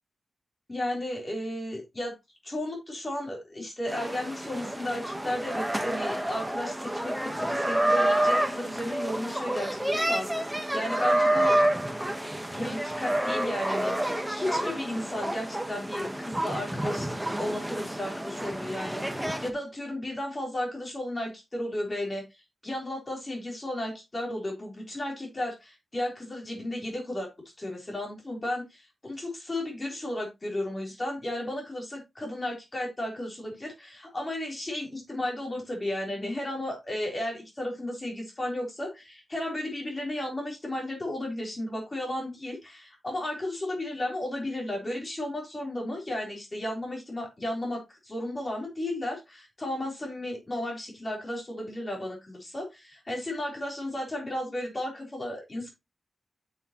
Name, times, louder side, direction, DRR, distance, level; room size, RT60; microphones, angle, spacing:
voice 1, 0.7-2.1 2.4-11.6 12.5-22.2 22.6-27.3 27.6-55.7, left 1 dB, 20° left, 0 dB, 3.6 m, -34 dB
sound 1, 3.9-19.5, right 1 dB, 5° right, 1.0 m, -29 dB
9.4 x 6.5 x 2.9 m, 0.22 s
wide cardioid pair, 175°, 0 cm